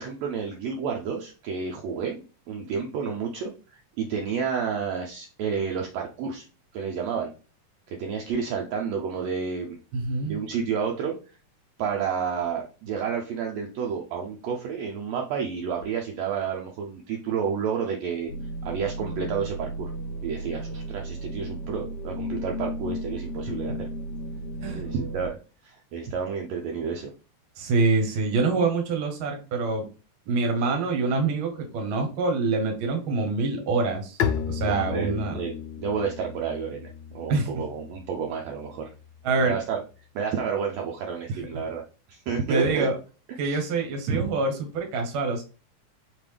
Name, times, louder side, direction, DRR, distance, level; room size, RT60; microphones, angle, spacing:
voice 1, 0.0-6.4 6.7-7.3 7.9-9.8 10.2-11.1 11.8-18.3 18.6-19.9 20.2-23.9 24.7-25.4 25.6-27.1 34.7-38.9 39.3-39.8 40.1-41.8 42.1-42.9 43.4-43.6 44.1-44.2, right 6 dB, 85° right, 1 dB, 1.5 m, -30 dB
voice 2, 9.9-10.4 24.6-24.8 27.6-29.8 30.3-34.2 34.5-35.4 37.3-37.5 39.2-39.6 41.3-41.4 42.5-42.9 43.4-45.4, right 3 dB, 60° right, 3 dB, 1.4 m, -25 dB
sound 1, 18.3-25.3, equal, 65° left, 1.6 m, -34 dB
Bowed string instrument, 34.2-39.8, left 8 dB, 85° left, 1.6 m, -34 dB
5.3 x 2.9 x 3.3 m, 0.34 s
omnidirectional pair, 3.7 m